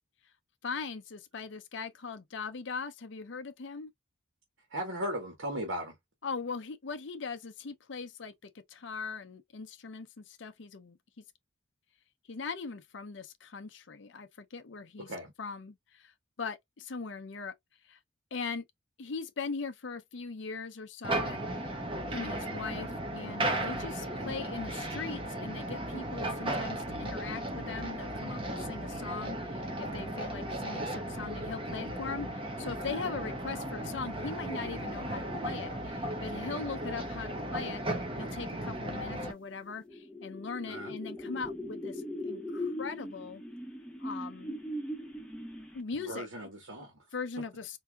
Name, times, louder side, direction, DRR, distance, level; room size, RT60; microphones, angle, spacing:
voice 1, 0.6-3.9 6.2-11.2 12.3-15.1 15.4-16.1 16.4-17.5 17.9-18.0 18.3-18.6 19.0-21.5 22.1-43.4 44.0-44.6 45.7-46.3 47.1-47.8, left 4 dB, 65° left, 0.6 m, -40 dB
voice 2, 4.7-5.9 15.1-15.3 40.7-40.9 46.1-46.9, equal, 85° right, 1.6 m, -37 dB
sound 1, 21.0-39.3, right 1 dB, 25° right, 0.8 m, -36 dB
sound 2, 39.5-46.0, left 1 dB, 5° left, 0.8 m, -40 dB
4.5 x 2.7 x 2.3 m
head